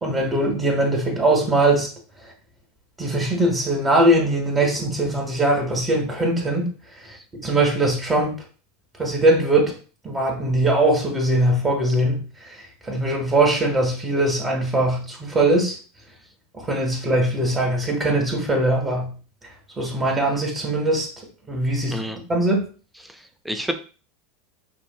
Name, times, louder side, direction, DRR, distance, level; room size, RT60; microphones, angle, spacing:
voice 1, 0.0-1.9 3.0-6.7 7.4-8.3 9.0-9.7 10.0-15.8 16.5-19.1 19.8-21.1 21.5-22.0 22.3-22.6, right 1 dB, 20° right, 1.3 m, -21 dB
voice 2, 23.0-23.7, equal, 5° right, 0.6 m, -30 dB
6.0 x 2.5 x 2.2 m
hypercardioid pair, 90°, 0 cm